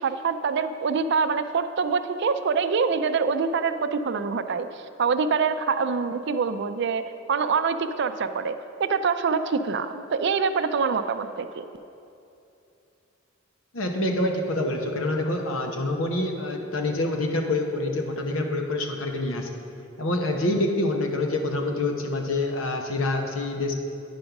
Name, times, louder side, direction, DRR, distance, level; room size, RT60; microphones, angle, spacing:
voice 1, 0.0-7.0 7.3-8.5 8.8-11.6, right 5 dB, 60° right, 10 dB, 0.4 m, -25 dB
voice 2, 13.7-19.6 20.0-23.7, left 2 dB, 90° left, 3 dB, 1.0 m, -26 dB
9.6 x 5.3 x 5.8 m, 2.7 s
head